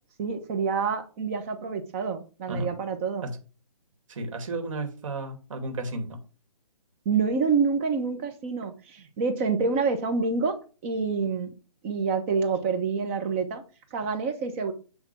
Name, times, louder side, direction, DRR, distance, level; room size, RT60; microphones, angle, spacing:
voice 1, 0.2-3.2 7.0-10.5 10.8-11.5 11.8-13.6 13.9-14.7, right 5 dB, 20° right, 6 dB, 1.0 m, -27 dB
voice 2, 4.1-6.2, right 2 dB, 55° right, 4 dB, 2.6 m, -33 dB
10.0 x 3.5 x 6.1 m, 0.36 s
hypercardioid pair, 160°, 20 cm